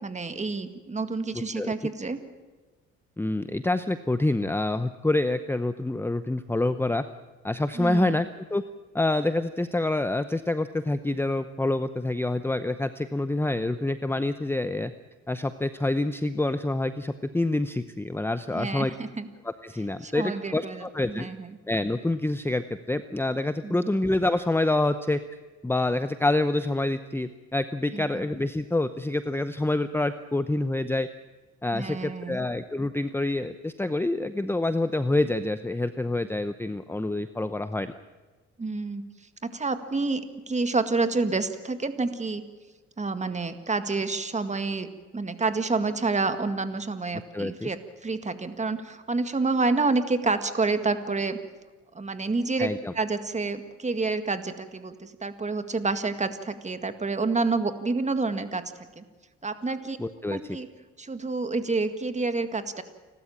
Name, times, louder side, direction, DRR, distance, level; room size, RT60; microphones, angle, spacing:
voice 1, 0.0-2.2 7.8-8.2 18.5-19.3 20.0-21.5 23.6-24.0 27.9-28.3 31.7-32.5 38.6-39.0 39.4-42.4 43.0-51.4 52.0-59.0 59.4-60.0 60.2-60.7 61.0-62.8, right 3 dB, 25° right, 10 dB, 1.9 m, -28 dB
voice 2, 3.2-7.0 7.4-8.6 8.9-14.9 15.3-18.9 19.4-21.3 21.7-25.2 25.6-31.1 31.6-37.9 47.3-47.7 52.6-52.9 60.0-60.6, left 2 dB, 10° left, 11 dB, 0.8 m, -27 dB
29.5 x 13.0 x 8.8 m, 1.3 s
cardioid pair, 90°, 30 cm